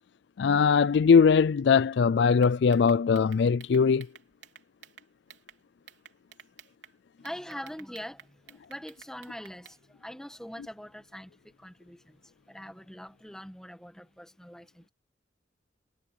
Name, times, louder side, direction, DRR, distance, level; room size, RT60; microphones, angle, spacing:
voice 1, 0.4-4.1, left 6 dB, 65° left, 0.4 m, -21 dB
sound 1, 2.4-5.6 5.9-6.9 7.2-9.8, right 8 dB, 75° right, 3.7 m, -52 dB
voice 2, 7.2-14.9, equal, 5° left, 1.5 m, -43 dB
head